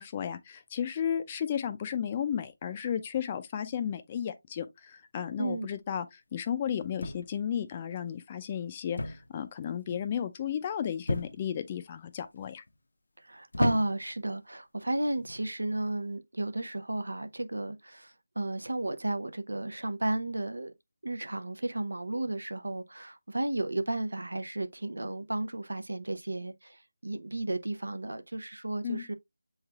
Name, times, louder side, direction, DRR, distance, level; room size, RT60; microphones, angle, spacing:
voice 1, 0.0-6.1 6.3-12.6 28.8-29.0, left 8 dB, 25° left, 0.4 m, -33 dB
sound 1, 7.0-7.5 9.0-9.4 9.6-10.1 11.1-11.6 12.3-12.7 13.5-14.2 15.1-15.4, left 2 dB, 70° left, 0.6 m, -33 dB
voice 2, 13.2-20.7 21.0-29.1, right 2 dB, 90° right, 0.6 m, -33 dB
7.0 x 3.2 x 2.3 m
figure-of-eight pair, 165°, 0 cm